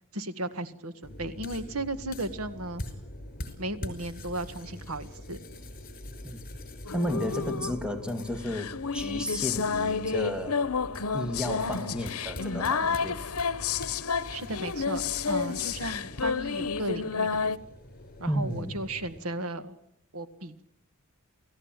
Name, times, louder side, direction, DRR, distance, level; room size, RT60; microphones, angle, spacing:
voice 1, 0.1-2.8 3.6-5.4 14.3-17.5 18.2-19.8 20.1-20.6, right 1 dB, 80° right, 11 dB, 1.9 m, -35 dB
sound 1, 1.0-19.2, left 1 dB, 40° left, 5.4 m, -44 dB
sound 2, 6.9-17.6, left 5 dB, 80° left, 1.0 m, -30 dB
voice 2, 6.9-10.7 11.1-13.3 18.3-18.8, equal, 5° right, 6 dB, 2.2 m, -33 dB
29.0 x 17.0 x 9.1 m, 0.80 s
head